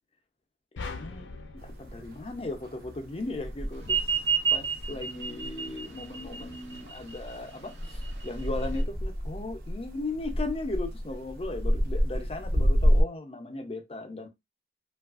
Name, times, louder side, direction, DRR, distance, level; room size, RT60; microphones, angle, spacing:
sound 1, 0.8-3.2, left 3 dB, 85° left, 0.4 m, -42 dB
voice 1, 0.9-1.3 1.6-4.2 4.5-14.3, left 2 dB, 30° left, 0.5 m, -37 dB
sound 2, 1.6-13.0, equal, 55° right, 0.6 m, -30 dB
sound 3, 3.8-8.8, right 7 dB, 85° right, 0.9 m, -31 dB
3.2 x 2.3 x 2.3 m
head